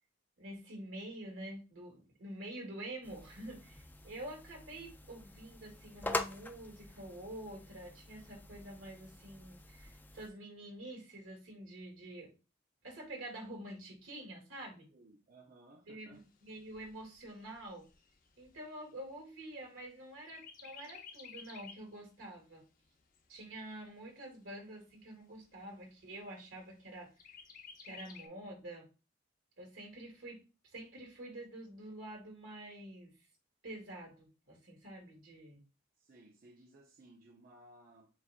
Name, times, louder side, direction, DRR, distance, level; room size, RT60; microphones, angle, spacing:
voice 1, 0.4-12.3 12.8-14.9 15.9-17.9 18.4-22.6 23.3-27.3 27.8-28.9 29.6-30.4 30.7-33.1 33.6-35.6, right 1 dB, 80° right, 1.9 m, -47 dB
sound 1, 3.0-10.3, left 2 dB, 10° left, 0.3 m, -44 dB
voice 2, 14.9-16.2 36.0-38.1, right 1 dB, 45° right, 0.6 m, -59 dB
Chirp tweet, 16.1-19.9 20.3-21.9 22.4-22.5 22.8-23.8 24.4-24.5 24.9-25.0 25.4-25.9 27.2-28.3, left 6 dB, 45° left, 0.6 m, -54 dB
7.2 x 2.4 x 2.4 m
head